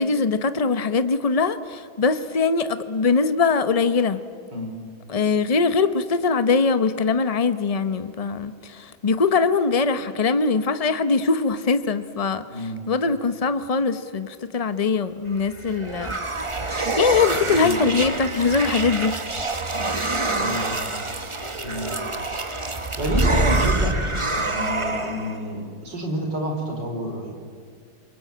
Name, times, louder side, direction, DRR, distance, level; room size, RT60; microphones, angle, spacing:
voice 1, 0.0-4.2 5.1-16.1 16.7-19.2, left 4 dB, 50° left, 11 dB, 0.4 m, -22 dB
voice 2, 12.5-12.8 17.5-17.8 20.4-21.0 21.6-22.0 22.6-23.9 24.3-27.3, equal, 55° right, 3 dB, 5.2 m, -29 dB
sound 1, 15.4-25.4, right 2 dB, 20° right, 1.0 m, -26 dB
27.5 x 23.0 x 8.6 m, 2.1 s
omnidirectional pair, 2.3 m